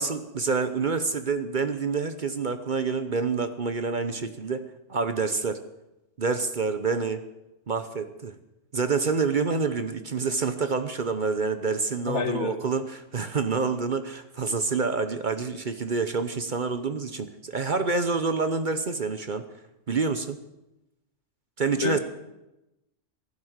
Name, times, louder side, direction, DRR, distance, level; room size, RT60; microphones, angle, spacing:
voice 1, 0.0-5.6 6.2-7.2 7.7-8.4 8.7-19.5 19.9-20.4 21.6-22.0, right 4 dB, 45° right, 10 dB, 0.9 m, -27 dB
voice 2, 12.1-12.6 21.7-22.0, left 5 dB, 65° left, 8 dB, 1.8 m, -28 dB
15.5 x 11.5 x 8.0 m, 0.94 s
omnidirectional pair, 1.3 m